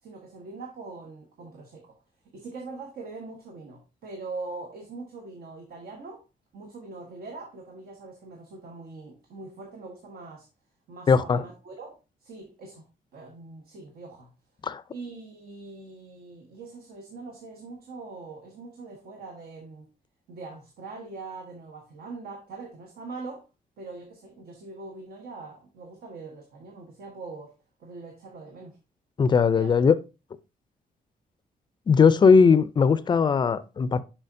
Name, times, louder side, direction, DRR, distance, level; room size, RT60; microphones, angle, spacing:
voice 1, 0.0-2.0 2.2-6.2 6.5-10.5 10.9-14.3 14.9-19.9 20.3-23.4 23.8-27.5 27.8-28.8 29.5-29.7, right 3 dB, 80° right, 1.2 m, -42 dB
voice 2, 11.1-11.4 14.6-14.8 29.2-30.0 31.9-34.0, left 5 dB, 30° left, 0.4 m, -19 dB
6.5 x 5.7 x 2.6 m
wide cardioid pair, 150°, 16 cm